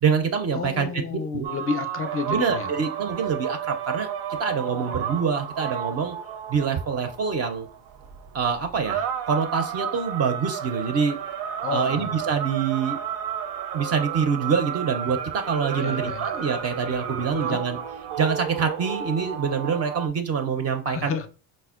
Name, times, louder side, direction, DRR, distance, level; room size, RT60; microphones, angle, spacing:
voice 1, 0.0-1.0 1.3-1.5 2.3-4.1 4.4-6.2 6.5-7.7 8.3-11.2 11.7-13.0 13.7-17.8 18.2-21.1, right 6 dB, 35° right, 0.4 m, -25 dB
voice 2, 0.5-2.7 11.6-12.3 15.7-16.4 17.3-17.6 20.9-21.3, left 5 dB, 35° left, 0.4 m, -31 dB
sound 1, 1.4-20.1, right 8 dB, 85° right, 0.5 m, -32 dB
4.2 x 2.1 x 2.3 m
cardioid pair, 100°, 44 cm